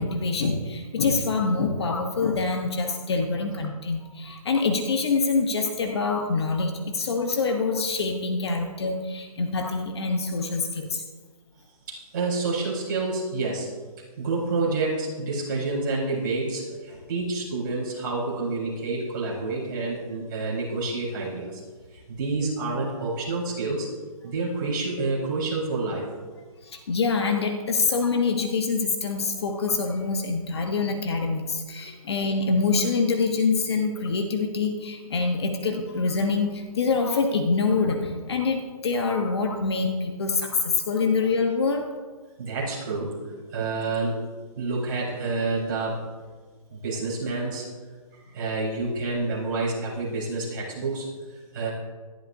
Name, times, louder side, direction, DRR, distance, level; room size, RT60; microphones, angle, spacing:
voice 1, 0.0-11.0 26.6-41.9, left 4 dB, 45° left, 5 dB, 1.1 m, -25 dB
voice 2, 11.9-13.7 14.2-21.6 22.1-23.9 24.2-26.1 42.4-43.2 43.5-44.3 44.5-46.0 46.7-47.7 48.3-51.7, right 3 dB, 35° right, -5 dB, 4.6 m, -28 dB
21.5 x 11.5 x 2.7 m, 1.4 s
hypercardioid pair, 175°, 19 cm